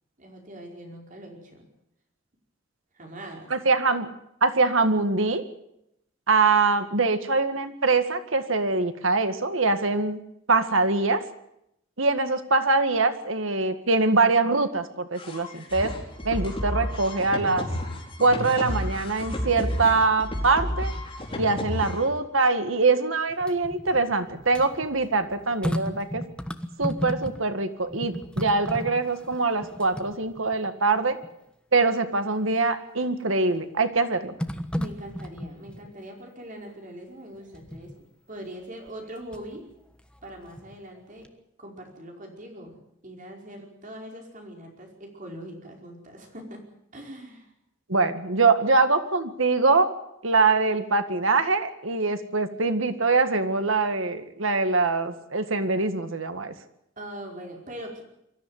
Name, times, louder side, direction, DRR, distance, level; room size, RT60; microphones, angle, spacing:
voice 1, 0.2-1.6 2.9-3.5 34.7-39.7 40.2-41.3 41.6-47.5 57.0-58.0, right 1 dB, 40° right, 1 dB, 5.1 m, -42 dB
voice 2, 3.5-4.1 4.4-5.4 6.3-10.2 10.5-11.2 12.0-15.9 16.2-17.7 18.2-20.9 21.4-26.2 26.8-31.2 31.7-34.3 47.9-49.9 50.2-56.5, right 3 dB, 85° right, 9 dB, 1.9 m, -23 dB
sound 1, 15.2-22.1, equal, 30° left, 4.6 m, -32 dB
sound 2, 23.3-27.6 27.9-30.7 31.2-31.3 33.0-33.5 34.4-35.9 37.5-38.0 38.9-39.6 40.0-41.0 41.2-41.3, equal, 5° left, 1.3 m, -35 dB
23.5 x 14.0 x 9.6 m, 0.80 s
head